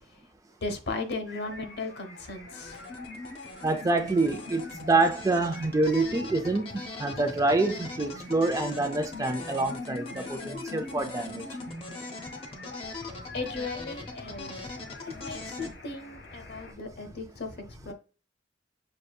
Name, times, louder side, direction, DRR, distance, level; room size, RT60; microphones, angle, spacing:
voice 1, 0.6-2.8 13.3-17.9, left 3 dB, 60° left, 0.9 m, -37 dB
sound 1, 1.3-16.7, left 3 dB, 75° left, 1.5 m, -47 dB
sound 2, 2.5-15.7, left 3 dB, 30° left, 0.7 m, -41 dB
voice 2, 3.6-11.4, right 2 dB, 20° right, 0.4 m, -26 dB
6.4 x 2.7 x 2.3 m
head